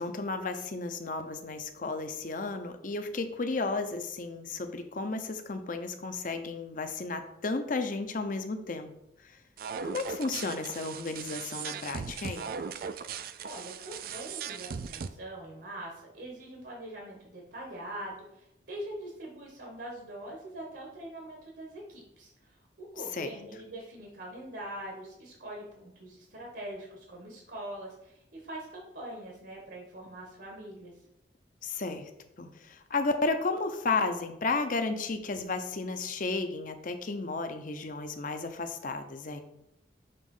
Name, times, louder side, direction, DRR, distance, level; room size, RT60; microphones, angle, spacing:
voice 1, 0.0-8.9 9.8-12.5 23.1-23.3 31.6-32.1 32.4-39.4, left 3 dB, 50° left, 8 dB, 0.7 m, -33 dB
sound 1, 9.6-15.1, right 6 dB, 55° right, 0.4 m, -38 dB
voice 2, 13.4-30.9, right 1 dB, 75° right, -1 dB, 1.5 m, -43 dB
6.8 x 3.1 x 5.4 m, 0.79 s
head